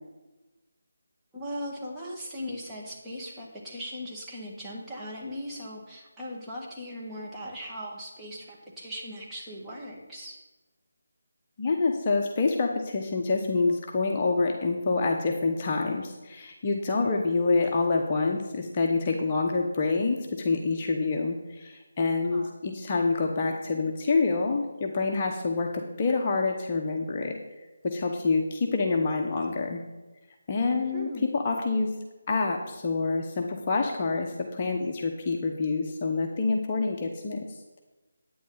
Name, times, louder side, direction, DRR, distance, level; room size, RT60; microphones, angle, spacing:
voice 1, 1.3-10.4 22.3-22.5 30.6-31.3, equal, 5° right, -6 dB, 2.0 m, -39 dB
voice 2, 11.6-27.4 27.8-29.8 30.5-31.9 32.3-37.4, left 3 dB, 30° left, 1 dB, 1.0 m, -27 dB
10.5 x 9.4 x 4.1 m, 1.1 s
figure-of-eight pair, 160°, 0 cm